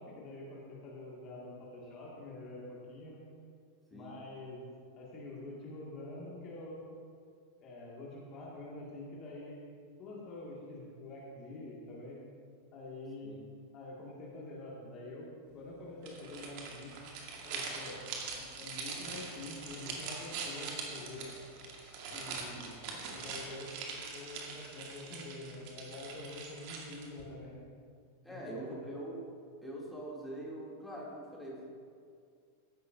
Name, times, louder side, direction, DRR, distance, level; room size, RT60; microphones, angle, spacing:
voice 1, 0.0-3.2 3.9-4.7 5.0-6.8 7.6-9.6 10.0-12.2 12.7-13.3 13.7-15.2 15.5-16.9 17.4-18.0 18.4-21.3 22.1-22.8 23.1-23.7 24.1-27.6 28.3-28.9, left 2 dB, 35° left, -5 dB, 2.2 m, -46 dB
sound 1, 16.0-27.2, right 4 dB, 45° right, 1.9 m, -43 dB
voice 2, 28.2-29.2 29.6-31.6, right 1 dB, ahead, -6 dB, 2.9 m, -43 dB
15.0 x 11.0 x 2.7 m, 2.2 s
figure-of-eight pair, 90°, 0 cm